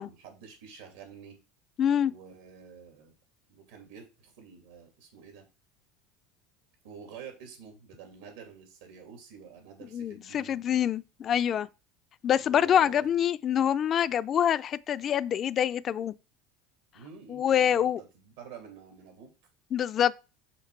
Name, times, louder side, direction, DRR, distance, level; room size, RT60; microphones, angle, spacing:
voice 1, 0.0-1.4 2.0-3.1 3.6-5.5 6.8-10.6 12.4-13.1 16.9-19.3, right 7 dB, 85° right, 2.3 m, -48 dB
voice 2, 1.8-2.1 9.9-11.7 12.2-16.1 17.3-18.0 19.7-20.1, left 9 dB, 35° left, 0.3 m, -26 dB
5.8 x 3.9 x 4.6 m
supercardioid pair, 130°, 0 cm